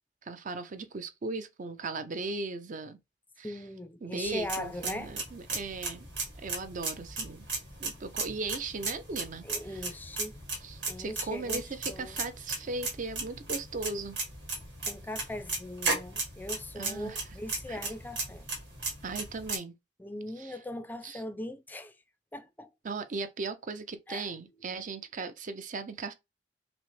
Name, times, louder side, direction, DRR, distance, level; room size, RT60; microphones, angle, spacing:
voice 1, 0.2-3.0 3.4-3.6 4.0-6.1 6.4-7.4 7.8-9.8 10.6-14.2 16.8-17.2 17.7-17.8 19.0-19.7 20.4-20.5 21.0-21.2 22.8-26.1, right 3 dB, 45° right, 0.5 m, -37 dB
voice 2, 3.4-5.1 9.4-10.4 10.9-12.2 14.8-18.5 20.0-21.9 22.3-22.7 24.1-24.8, left 1 dB, 10° left, 0.4 m, -40 dB
sound 1, 4.2-19.6, right 3 dB, 80° right, 1.5 m, -36 dB
6.1 x 2.0 x 3.1 m
head